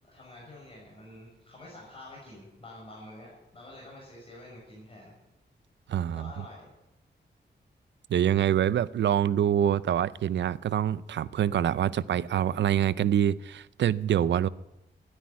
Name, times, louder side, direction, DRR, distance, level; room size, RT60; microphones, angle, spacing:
voice 1, 0.0-5.1 6.1-6.7, left 1 dB, 30° left, 6.3 m, -48 dB
voice 2, 5.9-6.3 8.1-14.5, right 10 dB, 80° right, 0.5 m, -25 dB
13.0 x 11.5 x 9.5 m
wide cardioid pair, 115°, 18 cm